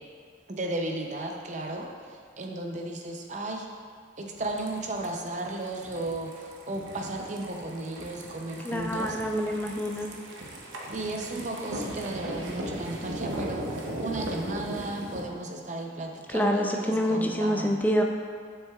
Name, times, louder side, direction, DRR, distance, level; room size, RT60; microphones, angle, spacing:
voice 1, 0.5-3.7 4.2-9.2 10.9-17.8, right 2 dB, 40° right, 1 dB, 0.6 m, -34 dB
sound 1, 4.4-15.2, right 1 dB, 80° right, 0.8 m, -38 dB
voice 2, 8.6-10.1 16.3-18.0, equal, 10° left, 2 dB, 0.3 m, -27 dB
7.3 x 6.4 x 2.4 m, 2.1 s
head